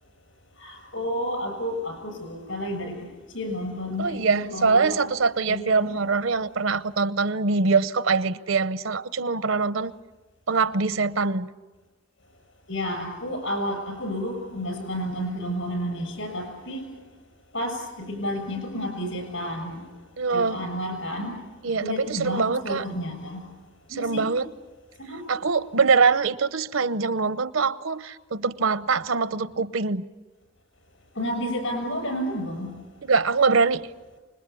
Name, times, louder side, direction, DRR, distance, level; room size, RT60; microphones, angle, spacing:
voice 1, 0.6-3.1 3.3-5.0 5.5-6.0 12.7-16.8 17.5-19.8 20.3-21.3 21.8-23.4 23.9-24.2 25.1-25.2 31.2-32.7, equal, 70° left, 7.1 m, -31 dB
voice 2, 4.0-9.9 10.5-11.5 20.2-20.6 21.6-22.9 23.9-24.5 25.3-30.1 33.0-33.8, right 4 dB, 80° right, 0.8 m, -23 dB
26.0 x 20.5 x 8.5 m
head